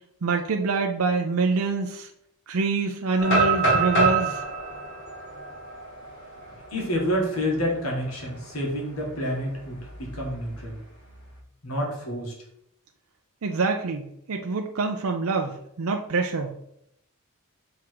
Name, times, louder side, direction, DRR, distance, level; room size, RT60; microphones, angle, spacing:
voice 1, 0.2-2.1 2.5-4.4 13.4-16.5, right 4 dB, 65° right, 3 dB, 0.5 m, -25 dB
sound 1, 3.2-7.1 7.5-7.6 8.1-8.4 9.8-10.6, right 3 dB, 55° left, 2.2 m, -26 dB
voice 2, 6.7-10.8 11.6-12.3, equal, 75° left, -2 dB, 2.0 m, -28 dB
6.0 x 3.7 x 4.7 m, 0.76 s
head